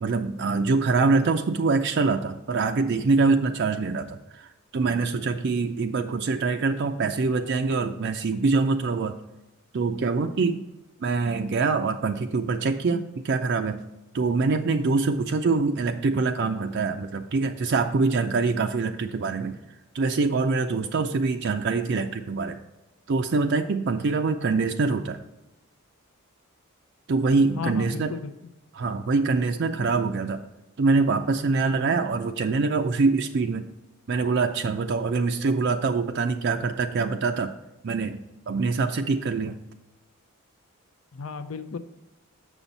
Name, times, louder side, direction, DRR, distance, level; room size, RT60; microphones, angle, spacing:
voice 1, 0.0-9.1 9.7-10.6 11.0-13.8 14.1-19.6 19.9-22.6 23.1-25.2 27.1-28.1 28.7-30.4 30.8-33.6 34.1-37.5 37.8-38.2 38.5-39.6, right 4 dB, 50° right, 6 dB, 0.4 m, -24 dB
voice 2, 27.4-28.3 41.1-41.8, left 5 dB, 70° left, 11 dB, 0.5 m, -34 dB
7.2 x 6.2 x 4.0 m, 0.97 s
head